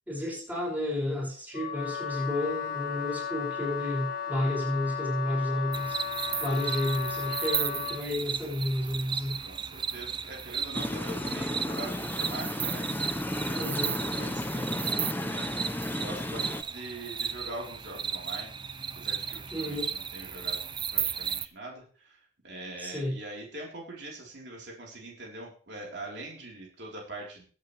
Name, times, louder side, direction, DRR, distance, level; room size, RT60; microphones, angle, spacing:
voice 1, 0.1-6.0 6.4-9.4 13.6-14.0 19.5-19.9 22.8-23.1, left 1 dB, 10° right, -4 dB, 6.1 m, -31 dB
Wind instrument woodwind instrument, 1.5-8.0, left 7 dB, 55° left, 1.1 m, -35 dB
sound 1, 5.7-21.5, right 7 dB, 25° right, 0.5 m, -35 dB
voice 2, 9.4-18.5 18.9-20.6 20.9-22.2 22.4-27.4, right 2 dB, 65° right, -2 dB, 4.0 m, -43 dB
sound 2, 10.7-16.6, left 1 dB, 10° left, 0.7 m, -33 dB
22.0 x 8.6 x 3.4 m, 0.42 s
head